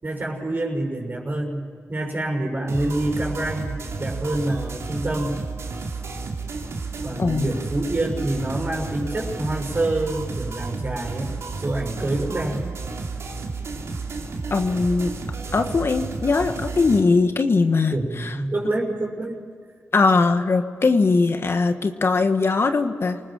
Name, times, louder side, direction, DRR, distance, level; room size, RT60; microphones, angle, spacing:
voice 1, 0.0-5.4 7.0-12.6 17.9-19.4, right 1 dB, 40° right, 0 dB, 6.3 m, -27 dB
sound 1, 2.7-17.0, right 4 dB, 65° right, 3.0 m, -32 dB
voice 2, 7.2-7.5 14.5-15.1 15.5-18.3 19.9-23.2, left 4 dB, 50° left, 7 dB, 1.5 m, -20 dB
28.0 x 19.5 x 7.5 m, 2.2 s
cardioid pair, 60°, 5 cm